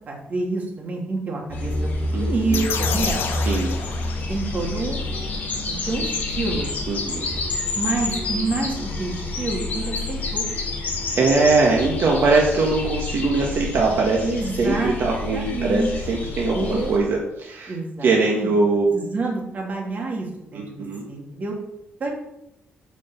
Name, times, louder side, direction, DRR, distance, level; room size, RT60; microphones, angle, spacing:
voice 1, 0.1-3.2 4.3-6.7 7.7-10.4 14.2-14.9 15.3-15.9 16.5-17.0 17.7-18.5 18.9-20.8 21.1-21.5 22.0-22.1, right 3 dB, 40° right, -1 dB, 2.7 m, -28 dB
sound 1, 1.5-17.0, left 2 dB, 40° left, 3.2 m, -28 dB
voice 2, 2.1-2.7 3.4-3.7 6.9-7.3 11.2-14.2 14.6-17.7 18.0-19.0 20.5-21.0, right 3 dB, 65° right, -1 dB, 1.6 m, -21 dB
sound 2, 2.5-4.6, left 5 dB, 70° left, 1.6 m, -28 dB
9.3 x 5.2 x 7.1 m, 0.84 s
cardioid pair, 145°, 4 cm